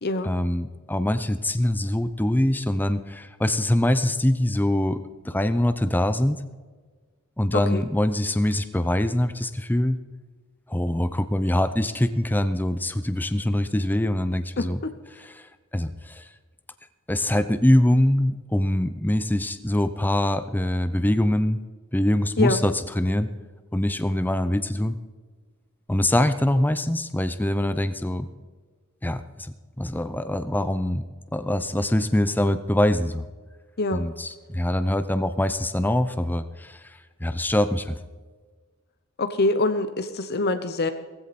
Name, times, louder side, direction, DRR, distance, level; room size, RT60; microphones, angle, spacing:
voice 1, 0.2-6.4 7.4-10.0 10.7-14.8 15.2-15.5 15.7-16.3 17.1-21.6 21.9-23.3 23.7-25.0 25.9-28.3 29.0-31.0 31.3-33.3 33.9-36.8 37.2-38.0, left 1 dB, 10° left, 11 dB, 0.6 m, -23 dB
voice 2, 7.5-7.8 14.6-14.9 22.4-22.6 33.8-34.1 39.2-40.9, left 2 dB, 45° left, 9 dB, 0.9 m, -25 dB
17.0 x 15.5 x 4.2 m, 1.4 s
head